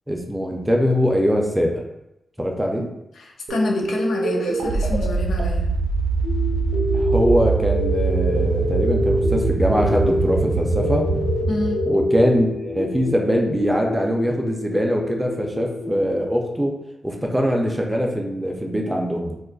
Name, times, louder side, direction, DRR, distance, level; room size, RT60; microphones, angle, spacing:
voice 1, 0.1-1.8 2.4-2.9 6.9-11.1 11.8-16.8 17.0-19.4, equal, 10° right, 1 dB, 0.4 m, -22 dB
voice 2, 3.1-5.7 11.5-11.8, left 2 dB, 85° left, 0 dB, 0.5 m, -27 dB
sound 1, 3.5-12.8, right 4 dB, 80° right, 0.5 m, -24 dB
sound 2, 6.2-16.2, left 1 dB, 70° left, 1.2 m, -27 dB
2.5 x 2.3 x 3.8 m, 0.87 s
wide cardioid pair, 165°, 0 cm